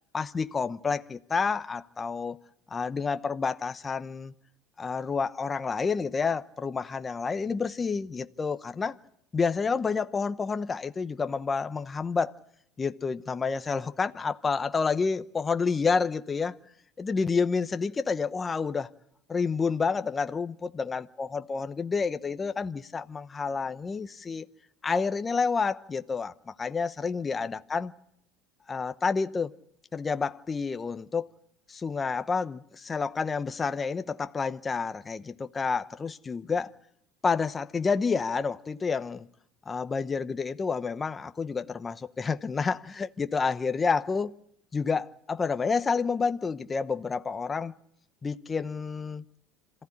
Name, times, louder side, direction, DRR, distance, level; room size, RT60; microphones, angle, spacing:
voice 1, 0.1-2.4 2.7-4.3 4.8-9.0 9.3-12.3 12.8-16.6 17.0-18.9 19.3-24.5 24.8-27.9 28.7-29.5 29.9-31.3 31.7-36.7 37.2-39.3 39.7-44.3 44.7-47.7 48.2-49.2, left 5 dB, 20° left, 0.9 m, -29 dB
26.5 x 15.5 x 9.9 m
supercardioid pair, 120°, 0 cm